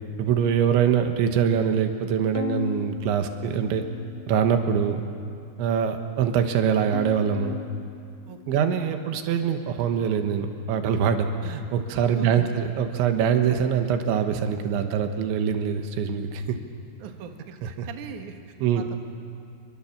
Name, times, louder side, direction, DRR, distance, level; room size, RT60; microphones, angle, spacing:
voice 1, 0.2-3.9 4.3-5.0 5.6-7.6 8.5-16.6 17.6-17.9 18.6-18.9, right 7 dB, 90° right, 6 dB, 3.7 m, -24 dB
Bowed string instrument, 2.3-4.7 5.2-5.9 6.9-9.4, left 8 dB, 85° left, 1.6 m, -38 dB
voice 2, 8.3-8.7 11.9-12.5 17.0-19.0, right 7 dB, 60° right, 4 dB, 2.4 m, -41 dB
27.5 x 22.5 x 7.3 m, 2.4 s
omnidirectional pair, 5.2 m